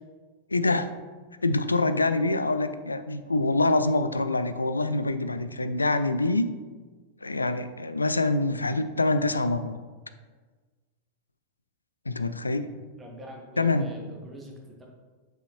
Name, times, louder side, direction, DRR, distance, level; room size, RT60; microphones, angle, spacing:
voice 1, 0.5-0.9 1.4-6.5 7.2-9.8 12.1-12.7 13.6-13.9, left 2 dB, 80° left, 11 dB, 0.3 m, -25 dB
voice 2, 13.0-14.9, equal, 15° right, 0 dB, 1.4 m, -44 dB
6.9 x 5.5 x 3.0 m, 1.4 s
figure-of-eight pair, 90°, 0 cm